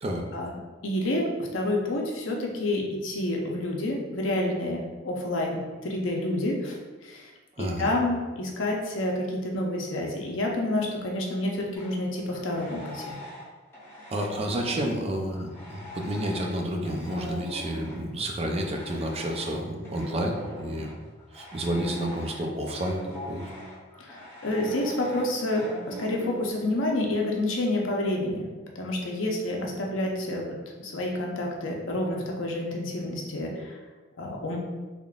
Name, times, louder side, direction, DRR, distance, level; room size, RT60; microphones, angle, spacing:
voice 1, 0.3-7.3 7.6-13.2 24.0-28.5 28.8-33.7 34.2-34.6, left 1 dB, 90° left, -1 dB, 0.7 m, -29 dB
voice 2, 7.6-7.9 14.1-20.9 21.3-23.5, right 1 dB, 30° right, 2 dB, 0.4 m, -30 dB
sound 1, 11.7-13.5 13.7-26.5, left 1 dB, 15° left, 0.9 m, -42 dB
3.6 x 3.5 x 2.4 m, 1.3 s
head